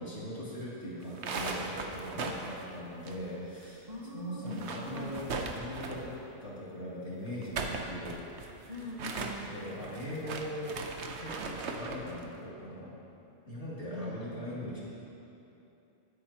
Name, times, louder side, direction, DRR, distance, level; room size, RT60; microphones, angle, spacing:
voice 1, 0.0-3.9 4.1-5.3 5.5-6.1 6.4-8.2 8.6-8.9 9.5-10.8 11.2-12.9 13.5-14.8, equal, 55° left, -8 dB, 3.1 m, -40 dB
sound 1, 1.0-3.7 3.9-4.0 4.4-6.2 7.3-12.1, right 3 dB, 60° right, 1.0 m, -38 dB
voice 2, 3.9-5.2 8.7-9.5 13.9-14.7, left 1 dB, 35° right, -3 dB, 1.1 m, -42 dB
19.5 x 8.6 x 2.9 m, 2.9 s
omnidirectional pair, 1.4 m